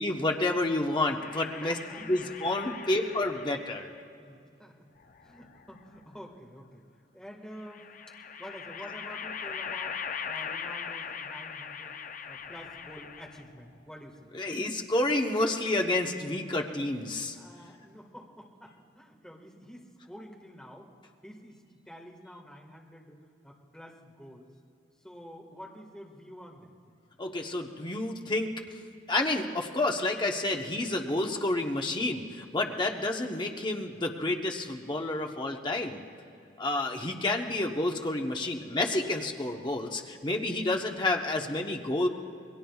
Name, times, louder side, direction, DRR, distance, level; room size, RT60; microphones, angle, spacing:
voice 1, 0.0-1.8 2.1-3.9 14.3-17.4 27.2-28.8 29.1-36.0 36.6-42.1, left 2 dB, 25° left, 2 dB, 1.0 m, -29 dB
sound 1, 1.2-3.9 5.0-6.0 7.6-13.6, left 6 dB, 45° left, 0.5 m, -40 dB
voice 2, 1.6-2.2 4.2-4.9 5.2-6.8 7.1-7.9 8.4-12.0 12.3-14.3 17.3-24.5 25.0-26.7, equal, 5° left, -1 dB, 1.7 m, -48 dB
28.5 x 21.5 x 2.4 m, 2.5 s
head